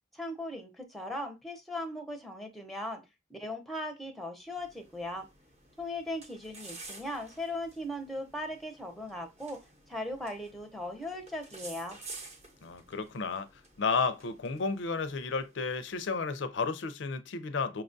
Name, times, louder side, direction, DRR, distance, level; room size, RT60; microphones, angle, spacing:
voice 1, 0.1-3.0 3.3-5.3 5.8-9.6 9.9-12.0, left 1 dB, ahead, 0.6 m, -38 dB
sound 1, 4.5-16.2, right 3 dB, 30° right, 0.8 m, -52 dB
voice 2, 12.6-13.5 13.8-17.8, left 4 dB, 65° left, 0.5 m, -32 dB
5.8 x 2.3 x 2.5 m
head